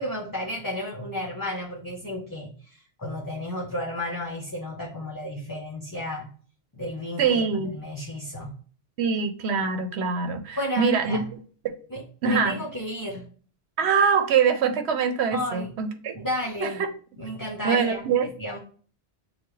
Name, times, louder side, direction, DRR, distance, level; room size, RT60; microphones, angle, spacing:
voice 1, 0.0-6.3 6.7-8.5 10.6-11.2 11.9-13.3 15.3-15.7 16.1-16.8 17.2-18.1 18.4-18.6, left 1 dB, 20° left, -2 dB, 0.8 m, -32 dB
voice 2, 7.2-7.7 9.0-11.2 11.6-11.8 12.2-12.6 13.8-16.2 16.6-16.7 17.6-18.3, right 6 dB, 85° right, 7 dB, 1.0 m, -24 dB
6.7 x 2.3 x 3.1 m, 0.42 s
omnidirectional pair, 1.1 m